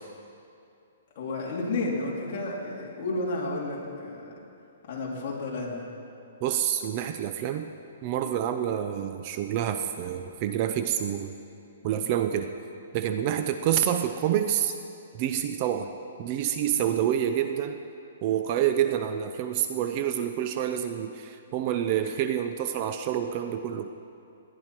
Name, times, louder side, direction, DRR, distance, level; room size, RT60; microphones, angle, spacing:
voice 1, 1.1-4.3 4.9-5.9 11.9-12.0 16.8-17.0, left 2 dB, 35° left, -4 dB, 3.0 m, -32 dB
voice 2, 6.4-7.7 8.0-11.3 11.8-12.5 12.9-14.8 15.1-15.9 16.2-17.8 18.2-23.9, right 10 dB, 30° right, 8 dB, 0.5 m, -27 dB
19.0 x 10.5 x 4.5 m, 2.6 s
hypercardioid pair, 170°, 0 cm